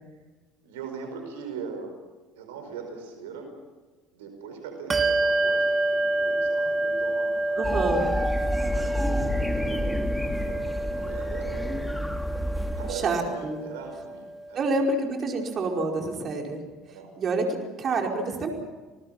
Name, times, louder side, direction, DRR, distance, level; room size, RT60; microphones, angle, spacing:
voice 1, 0.6-2.0 2.4-3.5 4.1-7.9 8.5-10.0 10.4-11.9 12.7-14.7 16.8-17.2, right 5 dB, 85° right, 6 dB, 4.8 m, -40 dB
Bell, 4.9-14.9, right 2 dB, 30° right, 2.6 m, -28 dB
voice 2, 7.5-8.1 12.9-13.6 14.5-16.6 16.9-18.5, right 3 dB, 45° right, 2 dB, 5.0 m, -28 dB
sound 1, 7.6-12.9, left 1 dB, 5° left, 2.7 m, -29 dB
29.0 x 20.0 x 5.9 m, 1.3 s
hypercardioid pair, 70°, 0 cm